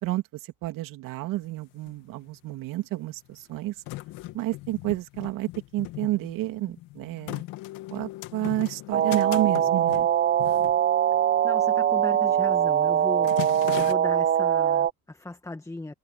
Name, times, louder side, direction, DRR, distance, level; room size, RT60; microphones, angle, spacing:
voice 1, 0.0-3.7 4.3-7.4 7.9-10.1, right 17 dB, 70° right, 2.9 m, -30 dB
sound 1, 1.4-1.5 1.7-2.5 3.2-11.5 11.8-12.0 12.4-12.7 13.0-13.9, left 18 dB, 75° left, 2.6 m, -38 dB
sound 2, 8.9-14.9, right 10 dB, 30° right, 0.6 m, -22 dB
voice 2, 11.4-13.3 13.8-15.9, left 2 dB, 10° left, 1.8 m, -37 dB
supercardioid pair, 95°, 34 cm